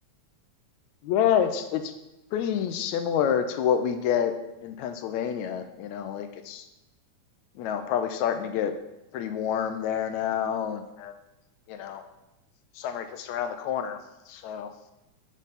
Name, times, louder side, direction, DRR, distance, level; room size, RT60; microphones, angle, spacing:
voice 1, 1.0-1.9 2.3-4.4 4.6-6.7 7.6-8.7 9.1-11.1 11.7-12.0 12.8-14.0 14.3-14.7, left 8 dB, 80° left, 8 dB, 1.9 m, -28 dB
7.3 x 6.9 x 4.0 m, 0.92 s
omnidirectional pair, 3.4 m